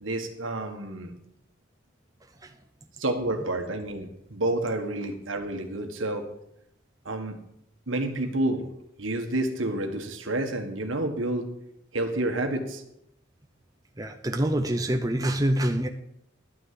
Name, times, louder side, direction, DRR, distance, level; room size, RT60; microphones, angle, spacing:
voice 1, 0.0-1.1 3.0-6.3 7.0-7.4 7.9-8.6 9.0-11.5 11.9-12.8, right 1 dB, 75° right, 5 dB, 1.6 m, -29 dB
voice 2, 14.0-15.9, right 1 dB, 20° right, 5 dB, 0.7 m, -26 dB
12.0 x 6.2 x 7.8 m, 0.78 s
head